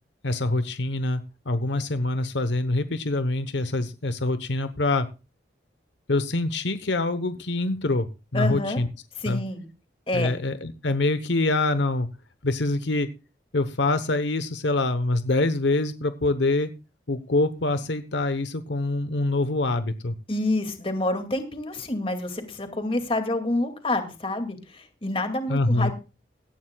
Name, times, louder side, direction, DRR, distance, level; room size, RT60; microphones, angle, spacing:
voice 1, 0.2-5.1 6.1-8.9 9.2-9.4 10.1-12.1 12.4-13.1 13.5-16.7 17.1-20.2 25.5-25.9, left 2 dB, 75° left, 11 dB, 1.0 m, -25 dB
voice 2, 8.3-8.8 9.2-9.7 10.1-10.3 20.3-25.9, left 2 dB, 30° left, 7 dB, 2.3 m, -28 dB
18.0 x 14.0 x 2.3 m, 0.31 s
head